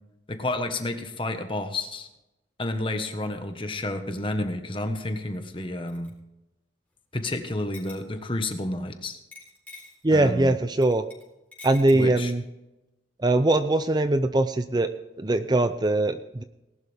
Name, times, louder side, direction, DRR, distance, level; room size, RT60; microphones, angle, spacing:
voice 1, 0.3-2.1 2.6-6.1 7.1-9.2 10.1-10.5 11.9-12.3, left 2 dB, 30° left, 7 dB, 1.4 m, -30 dB
sound 1, 5.9-6.1 7.7-8.3 9.3-10.0 10.8-11.3 11.5-12.0, left 3 dB, 10° left, 3.8 m, -45 dB
voice 2, 10.0-11.0 11.6-12.4 13.2-14.9 15.2-16.4, right 2 dB, 25° right, 10 dB, 0.5 m, -22 dB
19.0 x 11.5 x 3.5 m, 0.94 s
head